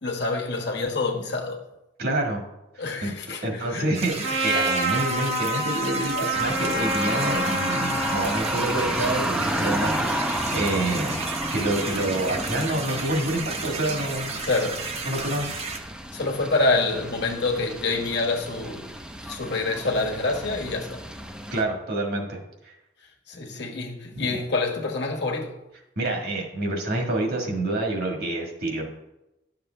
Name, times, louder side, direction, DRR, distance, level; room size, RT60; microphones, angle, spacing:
voice 1, 0.0-1.6 2.8-3.9 6.2-6.3 14.4-14.8 16.1-18.9 19.2-21.0 23.3-25.5, left 3 dB, 65° left, 1 dB, 1.4 m, -27 dB
voice 2, 2.0-2.4 3.0-3.1 3.4-11.1 11.5-14.3 15.0-15.5 21.5-22.7 26.0-28.9, right 1 dB, 60° right, 1 dB, 1.6 m, -27 dB
sound 1, 3.9-15.8, right 4 dB, 35° right, 0.8 m, -33 dB
Trumpet, 4.2-8.5, right 1 dB, 85° right, 1.9 m, -27 dB
sound 2, 6.3-21.6, equal, 5° right, 0.6 m, -32 dB
10.5 x 6.8 x 3.3 m, 0.94 s
head